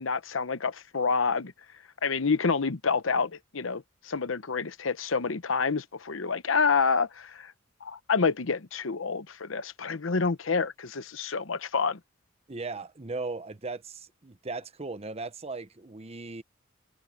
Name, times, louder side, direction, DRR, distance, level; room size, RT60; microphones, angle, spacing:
voice 1, 0.0-1.5 2.0-7.5 7.8-12.0, left 5 dB, 85° left, 0.9 m, -28 dB
voice 2, 12.5-16.4, right 3 dB, 30° right, 0.9 m, -37 dB
head